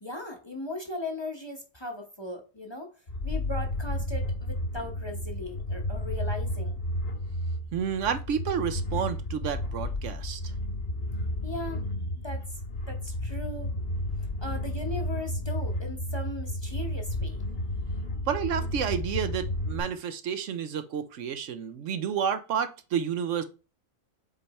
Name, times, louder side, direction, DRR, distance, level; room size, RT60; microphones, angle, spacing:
voice 1, 0.0-2.9 3.2-6.8 11.4-11.8 12.2-13.7 14.4-17.4, left 1 dB, 25° left, 0.9 m, -38 dB
sound 1, 3.1-19.8, left 1 dB, 50° left, 1.4 m, -32 dB
voice 2, 7.7-10.5 18.3-23.4, right 8 dB, 70° right, 0.9 m, -30 dB
7.7 x 3.3 x 4.1 m
omnidirectional pair, 1.4 m